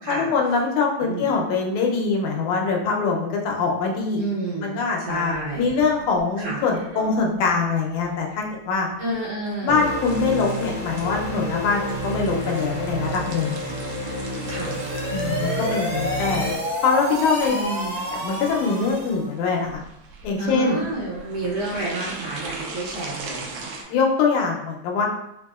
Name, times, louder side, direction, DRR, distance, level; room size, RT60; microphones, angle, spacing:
voice 1, 0.1-4.2 4.6-8.9 9.6-13.6 15.1-16.4 16.8-17.6 18.1-19.8 20.2-20.8 23.9-25.1, left 4 dB, 85° left, 0 dB, 2.1 m, -23 dB
voice 2, 4.1-5.7 6.4-6.6 9.0-9.8 14.5-14.7 17.5-17.9 20.4-23.7, right 2 dB, 65° right, -6 dB, 1.7 m, -30 dB
sound 1, 5.1-23.8, right 3 dB, 85° right, 1.3 m, -40 dB
sound 2, 9.7-16.5, equal, 35° left, 0.6 m, -30 dB
sound 3, 14.5-19.3, equal, 40° right, 0.8 m, -29 dB
5.1 x 2.7 x 2.4 m, 0.85 s
omnidirectional pair, 3.3 m